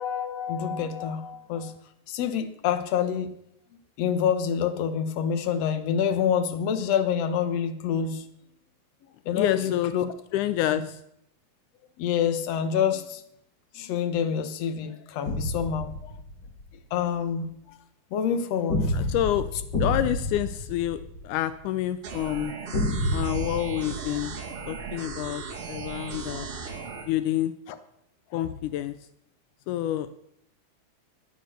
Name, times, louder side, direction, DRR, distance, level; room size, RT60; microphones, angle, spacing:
voice 1, 0.0-1.7 2.1-3.3 4.0-8.2 9.2-10.1 12.0-13.2 13.7-16.1 16.9-17.5 18.1-19.1, left 8 dB, 60° left, 10 dB, 1.8 m, -27 dB
voice 2, 9.3-9.9 10.3-11.0 18.9-19.5 19.8-22.5 23.1-24.4 24.7-26.5 27.1-27.5 28.3-28.9 29.7-30.2, left 13 dB, 90° left, 13 dB, 1.7 m, -28 dB
sound 1, 15.3-16.6 18.7-21.7 22.7-24.9, left 1 dB, 30° left, 2.4 m, -30 dB
sound 2, 22.0-27.0, right 5 dB, 40° right, 3.5 m, -37 dB
18.5 x 10.5 x 6.6 m, 0.78 s
omnidirectional pair, 4.4 m